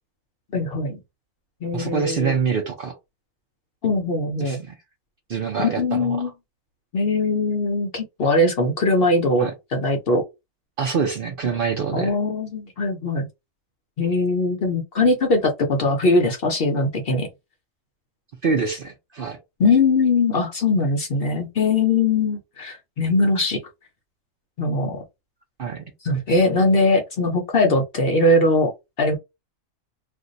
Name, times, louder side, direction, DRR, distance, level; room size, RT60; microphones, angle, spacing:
voice 1, 0.5-1.0 1.6-2.3 3.8-4.6 5.6-6.3 6.9-10.2 11.9-13.3 14.0-17.3 19.6-23.6 24.6-25.0 26.0-28.7 29.0-29.2, left 2 dB, 55° left, 0.7 m, -21 dB
voice 2, 1.7-2.9 4.4-4.7 5.3-6.3 9.4-9.5 10.8-12.1 18.4-19.4 25.6-25.8, right 5 dB, 55° right, 0.7 m, -25 dB
2.6 x 2.2 x 3.8 m
omnidirectional pair, 1.4 m